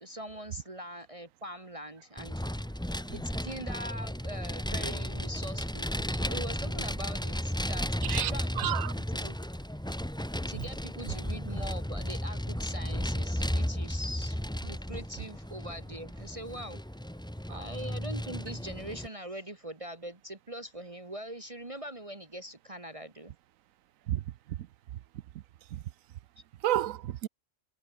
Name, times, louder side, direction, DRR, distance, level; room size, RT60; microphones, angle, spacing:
voice 1, 0.0-2.4 3.1-9.4 10.5-16.8 17.5-23.3, equal, 25° right, 1.7 m, -42 dB
Vehicle, 2.2-19.1, equal, 5° left, 1.6 m, -34 dB
voice 2, 8.6-8.9 17.5-17.6 24.1-24.2 24.6-24.7 25.7-25.8 26.6-27.3, right 13 dB, 85° right, 1.1 m, -30 dB
omnidirectional pair, 1.4 m